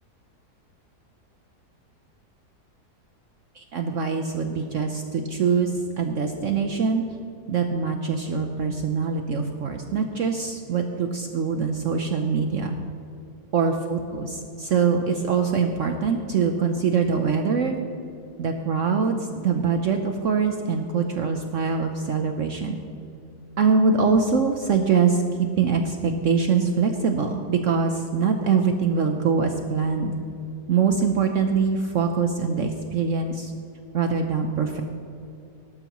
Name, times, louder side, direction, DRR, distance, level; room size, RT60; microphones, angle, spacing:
voice 1, 3.5-7.0 7.5-12.8 13.5-17.8 18.4-22.7 23.6-30.2 30.7-33.5 33.9-34.8, right 5 dB, 60° right, 5 dB, 1.0 m, -23 dB
19.0 x 12.0 x 3.0 m, 2.7 s
omnidirectional pair, 1.7 m